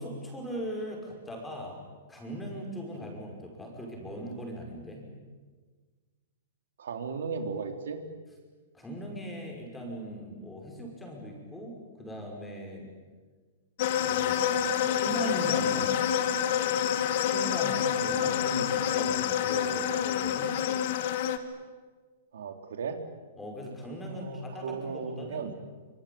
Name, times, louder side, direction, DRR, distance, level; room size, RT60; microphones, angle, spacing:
voice 1, 0.0-1.8 2.1-5.1 8.7-12.9 14.1-14.4 14.9-16.0 17.1-20.5 23.4-25.6, equal, 5° left, 0 dB, 5.6 m, -39 dB
voice 2, 6.8-8.0 22.3-23.0 24.0-25.5, right 5 dB, 80° right, 6 dB, 3.5 m, -36 dB
sound 1, 13.8-21.4, left 9 dB, 45° left, 2.0 m, -27 dB
26.0 x 25.5 x 8.7 m, 1.4 s
hypercardioid pair, 170°, 0 cm